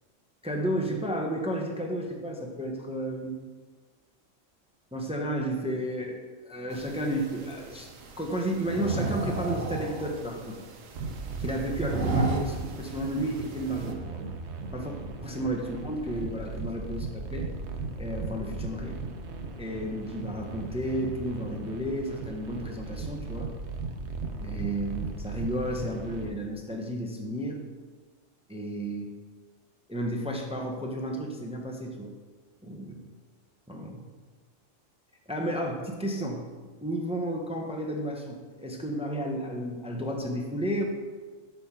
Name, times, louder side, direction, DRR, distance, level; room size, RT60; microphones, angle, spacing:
voice 1, 0.4-3.4 4.9-7.9 8.2-10.7 11.4-14.2 14.7-14.9 15.2-17.5 18.0-19.0 19.6-23.5 24.4-27.6 28.5-29.1 29.9-32.1 32.6-33.0 33.7-34.0 35.3-36.5 36.8-40.8, right 1 dB, 5° right, 1 dB, 0.5 m, -32 dB
sound 1, 6.7-13.9, right 3 dB, 80° right, 1.2 m, -34 dB
sound 2, 10.9-26.3, right 3 dB, 60° right, 1.0 m, -37 dB
6.5 x 5.3 x 5.7 m, 1.4 s
omnidirectional pair, 1.3 m